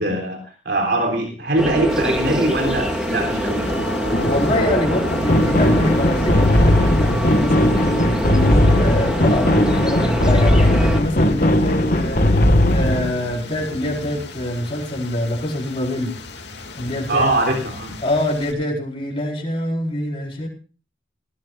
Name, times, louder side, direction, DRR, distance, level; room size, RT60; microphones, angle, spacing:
voice 1, 0.0-3.7 17.1-17.9, right 2 dB, 60° right, 2 dB, 3.6 m, -22 dB
sound 1, 1.6-11.0, equal, 5° right, 2.2 m, -24 dB
sound 2, 1.9-18.5, left 2 dB, 65° left, 2.6 m, -32 dB
voice 2, 4.2-16.1 16.8-17.3 18.0-20.5, left 1 dB, 30° left, -1 dB, 4.7 m, -25 dB
sound 3, 5.3-13.1, left 1 dB, 50° left, 1.7 m, -17 dB
19.5 x 17.5 x 2.5 m, 0.36 s
head